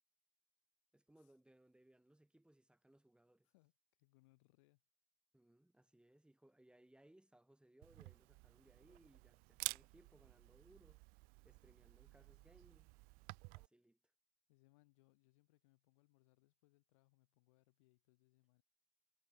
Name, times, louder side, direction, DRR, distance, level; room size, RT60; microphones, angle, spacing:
voice 1, 0.9-3.5 5.3-11.0 11.4-12.9 13.5-14.0, right 1 dB, 5° right, 5.0 m, -68 dB
voice 2, 4.0-4.8 14.5-18.6, left 23 dB, 80° left, 3.2 m, -74 dB
Camera, 7.8-13.7, right 29 dB, 65° right, 0.5 m, -51 dB
hypercardioid pair, 80°, 16 cm